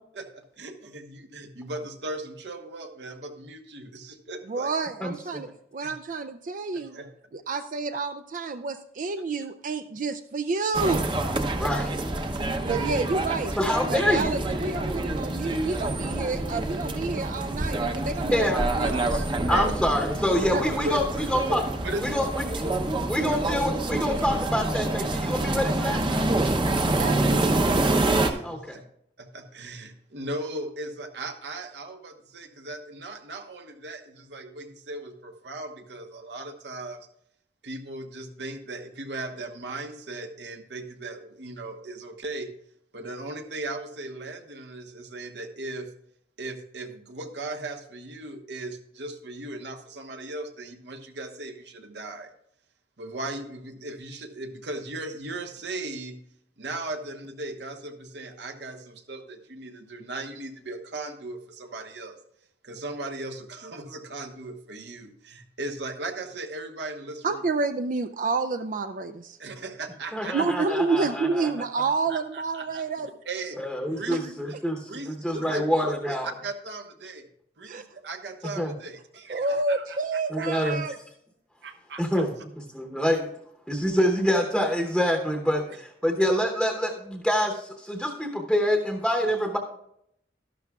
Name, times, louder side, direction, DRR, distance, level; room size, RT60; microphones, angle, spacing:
voice 1, 0.1-4.7 5.8-5.9 6.7-7.1 15.3-15.7 19.2-19.7 20.8-21.0 21.5-22.1 23.2-23.4 28.3-28.8 29.2-37.1 37.6-42.5 42.9-45.9 46.4-52.3 53.0-56.2 56.6-62.2 62.6-67.4 69.4-70.4 72.1-72.8 73.2-73.6 73.9-74.6 74.9-77.3 77.6-80.7 81.6-82.2, right 2 dB, 80° right, 5 dB, 1.1 m, -37 dB
voice 2, 4.5-7.0 7.3-11.1 12.7-13.5 13.9-19.2 20.5-20.6 27.0-27.9 67.2-69.4 70.3-73.1 74.1-74.2 77.6-77.8 79.3-80.9, right 4 dB, 45° right, 8 dB, 0.4 m, -29 dB
voice 3, 5.0-5.4 11.6-11.9 13.6-14.4 18.3-18.7 19.1-21.0 21.3-21.6 22.0-22.6 23.1-26.2 28.4-28.8 70.1-71.5 73.6-74.8 75.1-76.3 78.6-78.7 80.3-80.8 82.0-83.3 83.7-89.6, equal, ahead, 1 dB, 0.9 m, -26 dB
sound 1, 10.7-28.3, right 2 dB, 30° right, 0.7 m, -27 dB
12.0 x 11.5 x 2.3 m, 0.74 s
head